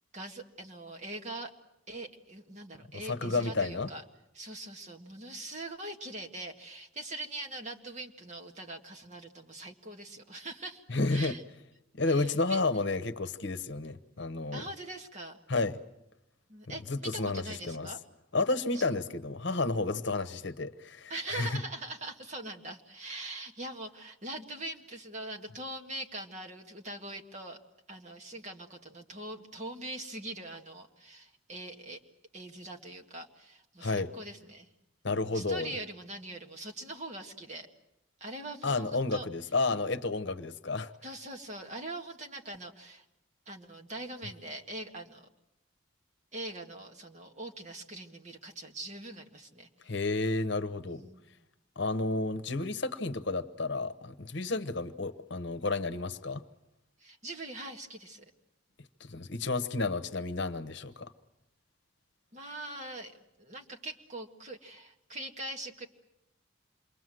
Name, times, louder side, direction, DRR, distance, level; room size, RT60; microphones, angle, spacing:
voice 1, 0.1-1.5 1.9-4.0 4.3-10.8 11.1-11.4 12.1-12.6 14.5-15.4 16.5-18.0 18.7-18.8 21.1-27.6 27.9-32.0 32.3-34.7 35.2-37.7 38.2-39.3 41.0-43.0 43.5-45.3 46.3-49.7 50.9-51.2 57.0-58.2 62.3-65.9, right 2 dB, 35° right, 1.9 m, -42 dB
voice 2, 2.9-3.9 10.9-11.3 11.9-14.6 15.5-15.8 16.9-17.9 18.3-21.5 33.8-34.1 35.0-35.7 38.6-40.9 49.9-51.0 51.8-56.4 59.1-61.1, left 3 dB, 55° left, 1.0 m, -31 dB
28.0 x 22.5 x 7.7 m
head